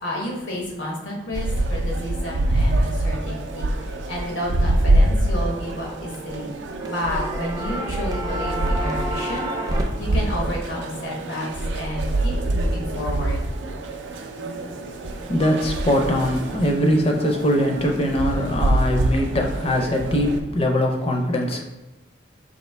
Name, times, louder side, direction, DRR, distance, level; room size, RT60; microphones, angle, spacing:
voice 1, 0.0-6.5 6.8-11.5 11.7-13.6, left 1 dB, 85° left, -2 dB, 1.0 m, -31 dB
sound 1, 1.3-20.4, right 1 dB, 90° right, 0.4 m, -25 dB
sound 2, 5.6-6.4 6.7-9.8, right 1 dB, 20° right, 0.4 m, -29 dB
voice 2, 15.3-21.6, left 1 dB, 30° left, 2 dB, 0.5 m, -22 dB
4.2 x 2.7 x 3.3 m, 1.0 s
head